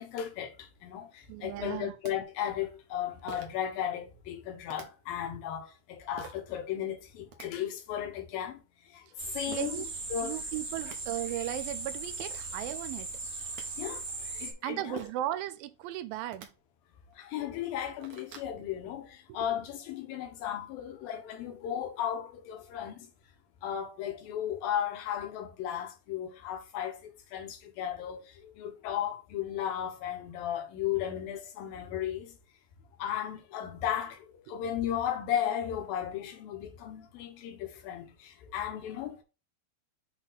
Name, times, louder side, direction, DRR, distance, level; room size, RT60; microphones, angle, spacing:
voice 1, 0.0-8.6 8.9-10.4 13.8-15.0 17.2-23.1 23.6-32.3 33.0-39.2, left 10 dB, 75° left, 3.1 m, -35 dB
voice 2, 1.3-2.0 9.5-9.9 10.2-13.1 14.6-16.5 34.5-34.6, right 13 dB, 80° right, 2.2 m, -36 dB
sound 1, 2.0-2.1 3.3-3.6 4.7-4.9 6.2-6.4 7.1-7.5 9.5-9.7 10.5-10.6 10.8-11.0 11.9-12.0 12.2-12.4 13.2-13.7 15.0-15.3 16.2-16.5 17.1-17.2 17.6-18.5, right 7 dB, 65° right, 2.4 m, -46 dB
sound 2, 9.2-14.5, right 3 dB, 40° right, 1.4 m, -38 dB
8.0 x 3.3 x 4.0 m
omnidirectional pair, 4.3 m